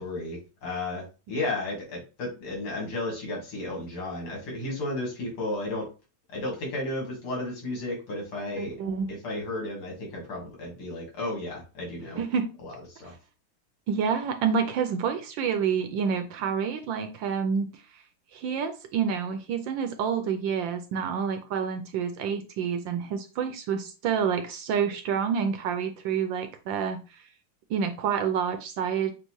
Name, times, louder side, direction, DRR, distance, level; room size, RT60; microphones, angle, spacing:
voice 1, 0.0-5.9 6.3-8.7 9.2-12.2 12.6-13.1, left 2 dB, 80° left, -1 dB, 2.8 m, -33 dB
voice 2, 8.6-9.1 12.2-12.5 13.9-17.7 18.3-27.2 27.7-29.1, right 7 dB, 70° right, 7 dB, 1.2 m, -28 dB
6.5 x 2.4 x 3.1 m, 0.31 s
omnidirectional pair, 2.4 m